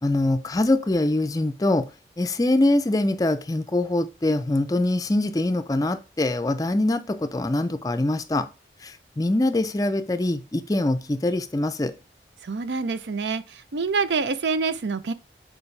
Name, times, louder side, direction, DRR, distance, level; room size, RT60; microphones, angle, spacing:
voice 1, 0.0-1.9 2.2-8.5 8.8-11.9, left 2 dB, 20° left, 0.4 m, -23 dB
voice 2, 12.4-15.1, right 4 dB, 85° right, 0.5 m, -26 dB
7.1 x 4.5 x 3.2 m
head